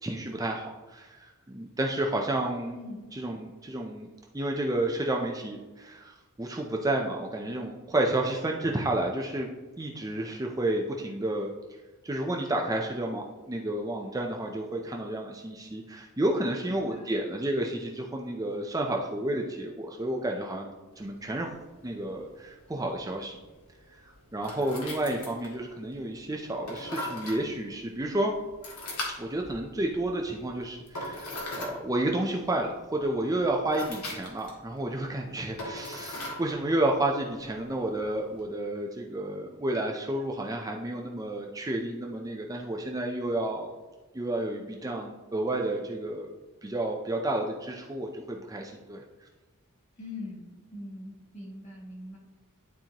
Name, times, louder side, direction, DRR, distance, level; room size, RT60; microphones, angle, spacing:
voice 1, 0.0-2.8 3.1-9.5 9.8-11.5 12.0-20.7 21.0-21.5 21.8-23.4 23.9-28.3 29.2-43.7 44.1-46.3 46.6-49.0, right 1 dB, 15° right, 1 dB, 0.5 m, -31 dB
voice 2, 2.7-3.1 16.6-17.1 50.0-52.2, left 2 dB, 35° left, -3 dB, 2.2 m, -42 dB
sound 1, 20.9-38.4, left 2 dB, 80° left, 1.8 m, -42 dB
11.5 x 4.4 x 2.9 m, 1.2 s
head